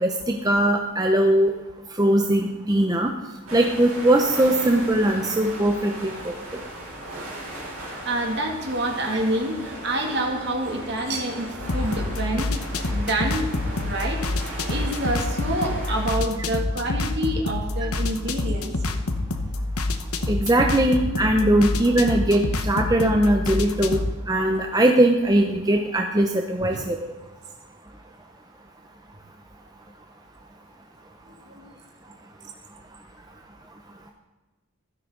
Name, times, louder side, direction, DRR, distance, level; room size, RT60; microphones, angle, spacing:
voice 1, 0.0-1.5 2.0-3.1 3.5-6.3 20.3-24.0 24.3-27.0, right 1 dB, 15° right, 3 dB, 0.7 m, -20 dB
sound 1, 3.5-16.1, right 1 dB, 70° right, 4.1 m, -37 dB
voice 2, 8.0-12.5 12.9-13.5 13.8-14.2 14.7-18.7 26.6-26.8 31.5-31.7, right 1 dB, 50° right, 1 dB, 2.4 m, -27 dB
sound 2, 11.6-24.1, left 2 dB, 85° left, 1.1 m, -27 dB
15.5 x 12.5 x 3.9 m, 1.3 s
head